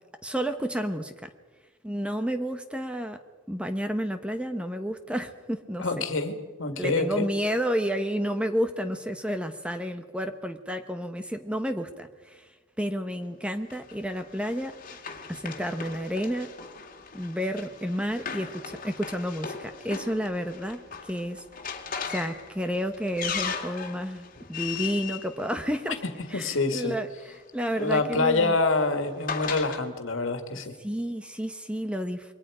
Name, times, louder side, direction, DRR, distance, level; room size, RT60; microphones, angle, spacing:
voice 1, 0.2-1.3 1.8-3.2 3.5-6.0 6.8-12.5 12.8-14.8 15.3-16.5 17.1-21.4 22.1-26.0 26.3-28.6 30.8-32.3, equal, 5° right, 8 dB, 1.0 m, -31 dB
voice 2, 5.8-6.3 6.6-7.3 26.3-26.9 27.8-30.7, left 3 dB, 75° left, 6 dB, 2.2 m, -26 dB
Run, 13.7-26.3 27.3-29.8, left 6 dB, 40° left, 2.2 m, -38 dB
27.5 x 23.0 x 5.0 m, 1.3 s
head